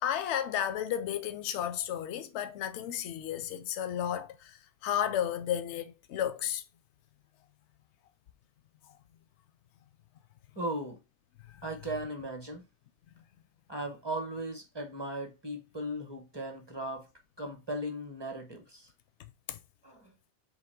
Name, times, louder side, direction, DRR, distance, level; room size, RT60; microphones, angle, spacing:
voice 1, 0.0-6.6 11.5-11.6 19.5-19.6, left 10 dB, 75° left, 0.9 m, -33 dB
voice 2, 10.6-11.0 11.6-12.6 13.7-17.1 17.4-18.9 19.8-20.0, right 1 dB, 25° right, 0.8 m, -37 dB
4.0 x 2.8 x 4.3 m
omnidirectional pair, 1.2 m